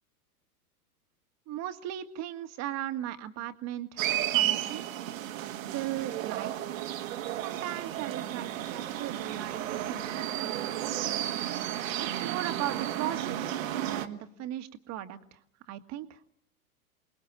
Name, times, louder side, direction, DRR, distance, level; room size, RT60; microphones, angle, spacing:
voice 1, 1.5-4.8 5.7-6.8 7.4-10.0 10.3-11.4 12.2-15.4 15.7-16.2, right 12 dB, 35° right, 9 dB, 1.8 m, -38 dB
sound 1, 4.0-14.1, right 12 dB, 60° right, 1.9 m, -33 dB
28.5 x 20.0 x 7.5 m, 0.69 s
figure-of-eight pair, 100°, 45 cm